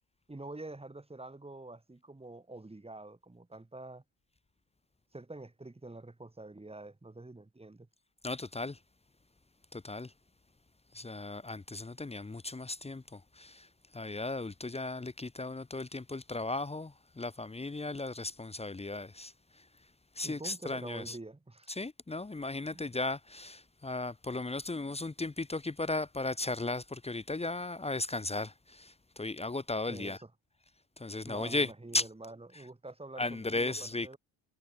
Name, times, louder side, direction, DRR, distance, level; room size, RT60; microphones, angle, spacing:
voice 1, 0.3-4.0 5.1-7.9 20.2-21.7 22.7-22.9 29.9-30.3 31.2-34.2, right 2 dB, 15° right, 7.7 m, -47 dB
voice 2, 8.2-8.8 9.7-10.1 10.9-13.7 13.9-19.3 20.1-21.2 21.7-30.2 31.0-32.1 33.2-34.1, left 2 dB, 15° left, 1.4 m, -36 dB
supercardioid pair, 70°, 40 cm